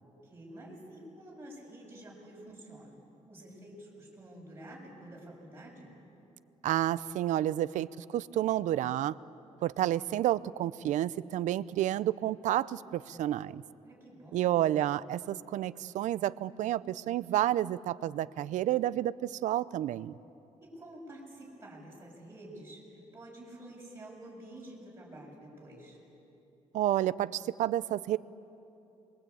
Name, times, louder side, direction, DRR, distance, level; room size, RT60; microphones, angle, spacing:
voice 1, 0.0-3.0 3.3-5.9 13.8-14.4 20.6-26.0, right 1 dB, 20° right, -3 dB, 7.2 m, -49 dB
voice 2, 6.6-7.9 8.1-9.2 9.6-13.6 14.3-20.2 26.7-28.2, right 13 dB, 90° right, 17 dB, 0.6 m, -30 dB
27.5 x 22.5 x 8.6 m, 2.9 s
cardioid pair, 155°, 12 cm